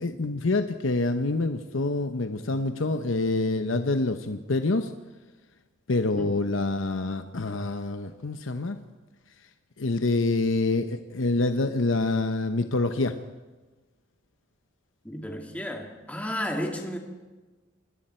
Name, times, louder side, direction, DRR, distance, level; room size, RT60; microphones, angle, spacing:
voice 1, 0.0-4.9 5.9-8.8 9.8-13.2, left 2 dB, 70° left, 8 dB, 0.9 m, -26 dB
voice 2, 15.0-17.0, equal, 5° left, 2 dB, 2.1 m, -33 dB
28.0 x 21.5 x 4.4 m, 1.3 s
head